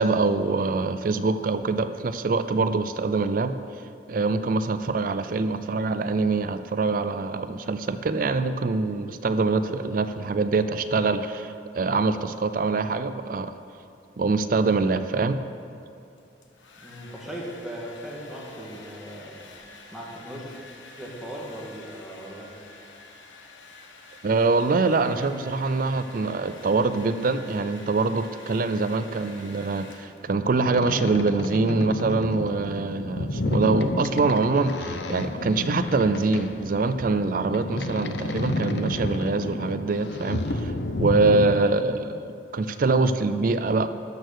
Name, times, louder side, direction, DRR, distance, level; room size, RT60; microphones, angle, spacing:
voice 1, 0.0-3.6 4.1-13.5 14.2-15.4 24.2-43.9, right 3 dB, 45° right, 11 dB, 0.4 m, -24 dB
Domestic sounds home sounds, 16.2-30.5, left 3 dB, 90° left, 1.1 m, -48 dB
voice 2, 16.8-19.4 19.9-20.5 21.0-22.5, right 1 dB, ahead, -5 dB, 1.8 m, -38 dB
Boat Water vehicle, 30.7-41.5, left 2 dB, 65° left, 0.6 m, -30 dB
12.5 x 6.5 x 6.5 m, 2.5 s
head